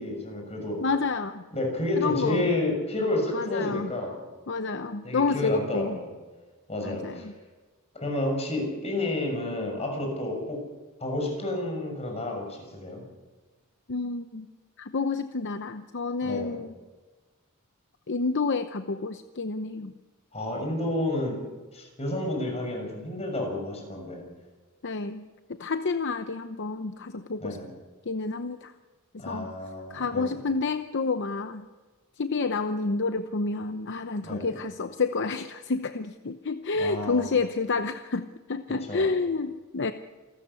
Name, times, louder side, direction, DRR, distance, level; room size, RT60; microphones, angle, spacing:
voice 1, 0.0-0.8 1.5-4.2 5.0-6.1 6.7-7.3 7.9-10.6 11.0-13.0 16.2-16.5 20.3-21.4 21.7-24.2 27.4-27.7 29.2-30.4 34.2-34.5 36.8-37.3 38.9-39.1, left 1 dB, 30° left, 2 dB, 6.5 m, -30 dB
voice 2, 0.8-1.4 2.0-2.5 3.3-3.9 4.5-6.0 6.8-7.3 13.9-14.5 14.8-16.8 18.1-19.9 24.8-25.3 25.6-27.6 28.1-28.7 29.2-29.5 29.9-31.6 32.2-39.9, left 4 dB, 55° left, 9 dB, 0.8 m, -29 dB
28.0 x 13.5 x 8.3 m, 1.3 s
head